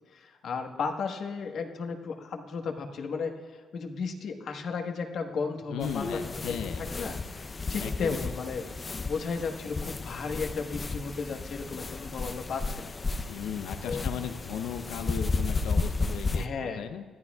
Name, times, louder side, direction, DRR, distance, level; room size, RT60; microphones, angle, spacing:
voice 1, 0.1-6.0 6.5-7.4 7.7-8.6 9.0-12.9 13.8-14.0 16.3-16.9, left 5 dB, 65° left, 3 dB, 1.4 m, -34 dB
voice 2, 5.7-6.8 7.8-8.2 13.3-17.0, left 8 dB, 85° left, 7 dB, 0.7 m, -36 dB
sound 1, 5.8-16.5, left 3 dB, 30° left, 0.7 m, -33 dB
21.0 x 14.0 x 2.4 m, 1.4 s
cardioid pair, 90°, 0 cm